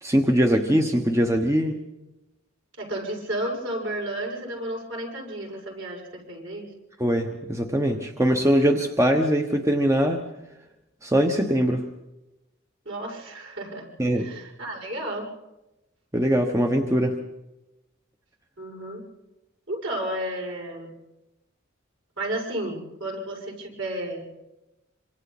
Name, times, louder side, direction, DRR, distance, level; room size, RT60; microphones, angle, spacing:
voice 1, 0.0-1.8 7.0-10.2 11.0-11.9 14.0-14.3 16.1-17.2, equal, 15° right, 4 dB, 1.1 m, -22 dB
voice 2, 2.8-6.7 12.8-13.9 14.1-15.3 18.6-19.0 19.7-20.9 22.2-24.2, right 1 dB, 60° right, -1 dB, 6.9 m, -32 dB
26.5 x 26.0 x 4.2 m, 0.97 s
head